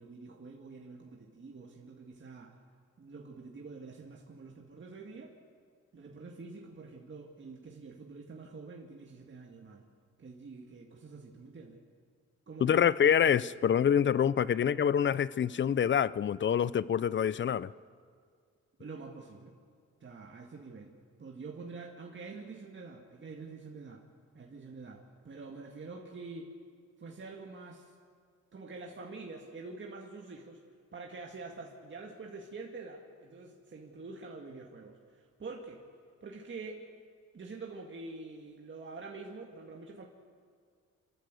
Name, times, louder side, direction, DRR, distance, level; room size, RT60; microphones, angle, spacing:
voice 1, 0.0-2.6 3.0-5.3 5.9-9.9 10.2-11.8 12.5-12.8 18.8-19.5 20.0-24.0 24.3-26.5 27.0-27.9 28.5-30.6 30.9-35.9 36.2-36.9 37.3-40.0, right 3 dB, 40° right, 0 dB, 2.0 m, -46 dB
voice 2, 12.6-17.7, left 8 dB, 40° left, 19 dB, 0.6 m, -26 dB
27.5 x 13.0 x 7.8 m, 2.1 s
cardioid pair, 85°, 29 cm